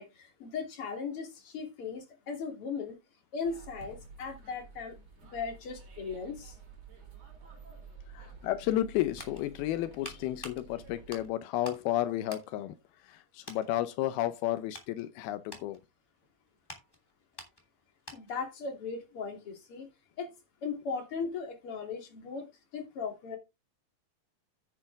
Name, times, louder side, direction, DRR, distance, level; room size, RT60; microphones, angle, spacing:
voice 1, 0.0-3.0 3.3-5.0 5.3-6.6 18.1-19.9 20.2-20.3 20.6-22.5 22.7-23.4, left 5 dB, 40° left, 3.3 m, -37 dB
sound 1, 3.4-11.3, right 4 dB, 45° right, 4.3 m, -51 dB
voice 2, 8.1-12.8 13.0-15.8, left 13 dB, 85° left, 2.7 m, -32 dB
sound 2, 9.2-11.9 12.2-13.1 13.4-13.7 14.2-18.5 18.8-18.9, equal, 5° left, 2.5 m, -49 dB
9.9 x 8.8 x 3.5 m
omnidirectional pair, 4.4 m